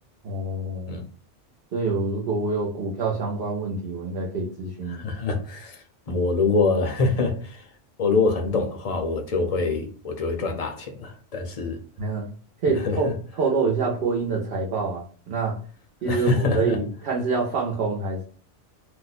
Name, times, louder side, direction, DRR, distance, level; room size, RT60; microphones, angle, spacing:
voice 1, 0.2-1.0 1.7-5.0 12.0-12.3 12.6-13.1 13.4-15.6 16.0-18.2, right 4 dB, 60° right, 0.9 m, -26 dB
voice 2, 4.9-7.6 8.0-11.8 12.7-13.1 16.0-16.8, left 3 dB, 40° left, 0.6 m, -25 dB
2.6 x 2.2 x 4.0 m
omnidirectional pair, 1.2 m